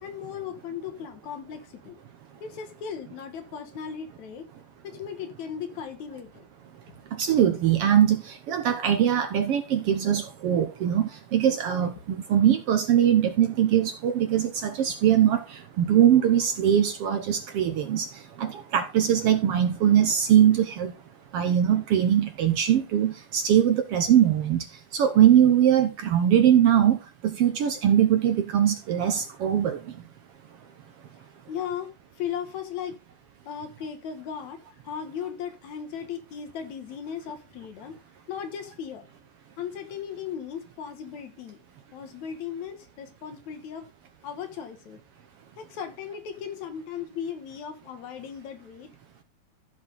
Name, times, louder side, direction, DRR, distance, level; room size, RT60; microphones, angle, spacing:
voice 1, 0.0-2.0 2.4-4.5 4.8-6.5 31.5-31.9 32.2-33.0 33.5-38.0 38.3-39.1 39.6-41.6 41.9-43.9 44.2-45.0 45.6-48.9, left 8 dB, 75° left, 2.5 m, -37 dB
voice 2, 7.1-18.1 18.4-20.9 21.3-24.6 24.9-27.0 27.2-29.8, right 10 dB, 65° right, 1.6 m, -21 dB
14.5 x 5.2 x 3.8 m
omnidirectional pair, 3.4 m